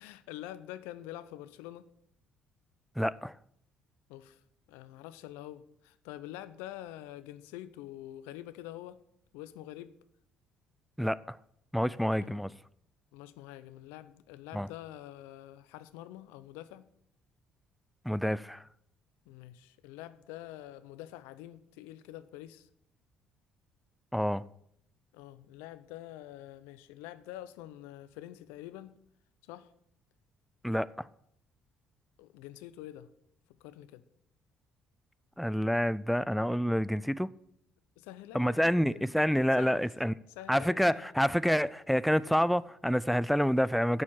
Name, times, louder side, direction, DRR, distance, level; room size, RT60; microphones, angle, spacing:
voice 1, 0.0-1.9 4.1-4.4 4.7-9.0 9.3-9.9 12.2-12.4 13.1-16.9 19.3-22.7 25.1-28.9 29.4-29.7 32.2-33.1 33.6-34.0 38.0-39.1 39.6-39.8 40.4-41.1, left 13 dB, 80° left, 0.5 m, -46 dB
voice 2, 3.0-3.3 11.0-11.4 11.7-12.5 14.5-14.7 18.1-18.6 24.1-24.4 30.6-31.1 35.4-37.3 38.3-40.1 40.5-44.0, equal, ahead, 0.3 m, -28 dB
7.2 x 6.3 x 7.3 m
hypercardioid pair, 60°, 4 cm